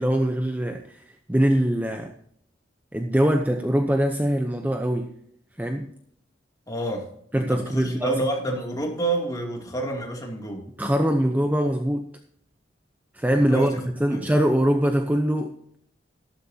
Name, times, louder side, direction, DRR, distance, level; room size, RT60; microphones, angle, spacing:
voice 1, 0.0-2.1 2.9-5.1 5.6-5.9 7.3-8.1 10.8-12.1 13.1-13.7 14.0-15.8, equal, 10° right, 5 dB, 0.7 m, -23 dB
voice 2, 6.7-7.0 7.3-10.6 13.4-13.8 14.1-14.2, right 2 dB, 20° left, 0 dB, 2.7 m, -28 dB
13.0 x 12.5 x 2.8 m, 0.67 s
head